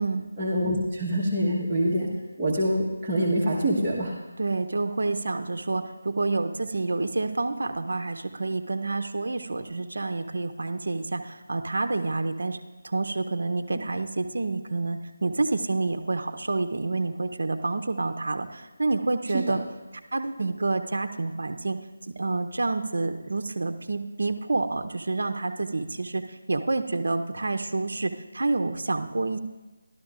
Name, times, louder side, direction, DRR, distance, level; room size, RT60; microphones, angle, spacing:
voice 1, 0.4-2.1 2.4-4.1 13.7-13.8 19.3-19.4, equal, 10° right, -11 dB, 1.2 m, -25 dB
voice 2, 4.4-12.6 12.8-19.6 20.1-21.8 22.1-29.4, right 3 dB, 70° right, 7 dB, 0.6 m, -28 dB
13.0 x 12.0 x 2.5 m, 1.1 s
figure-of-eight pair, 165°, 0 cm